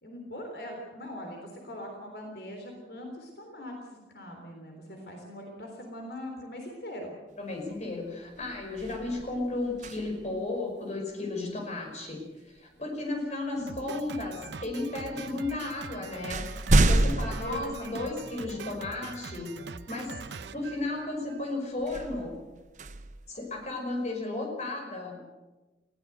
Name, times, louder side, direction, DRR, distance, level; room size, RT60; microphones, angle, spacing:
voice 1, 0.0-3.8 4.1-7.2 13.1-13.7 17.4-18.0, left 1 dB, 65° left, 2 dB, 3.6 m, -40 dB
voice 2, 7.4-16.5 16.9-19.6 19.9-20.2 20.5-22.4 23.3-25.2, left 2 dB, 40° left, 2 dB, 5.2 m, -34 dB
sound 1, 7.7-8.0 8.3-10.4 12.6-12.8 13.6-14.3 15.2-15.3 15.7-18.5 19.1-19.2 21.8-24.0, right 2 dB, 45° right, 1.0 m, -29 dB
Drum kit, 13.7-21.5, right 4 dB, 85° right, 0.8 m, -43 dB
20.5 x 16.5 x 8.0 m, 1.2 s
head